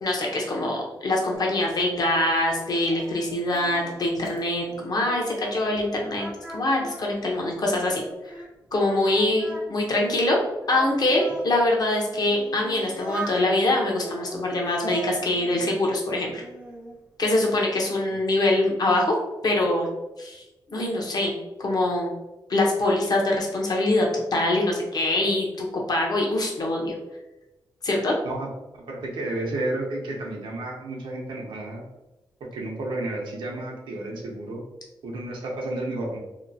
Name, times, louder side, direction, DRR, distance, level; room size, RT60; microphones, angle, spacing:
voice 1, 0.0-6.3 6.5-8.0 8.3-8.4 8.7-10.4 10.7-16.4 17.2-19.1 19.4-19.9 20.2-20.4 20.7-21.3 21.6-22.1 22.5-24.1 24.3-26.9 27.8-28.1, left 1 dB, 50° left, -1 dB, 0.7 m, -24 dB
Singing, 1.3-5.9 6.1-8.5 8.9-11.5 12.1-13.4 14.0-16.0 16.4-17.0, right 1 dB, 10° right, 0.5 m, -40 dB
voice 2, 28.9-31.8 32.5-34.6 35.0-36.2, right 2 dB, 85° right, -1 dB, 0.6 m, -31 dB
2.8 x 2.1 x 2.6 m, 1.0 s
cardioid pair, 65°, 8 cm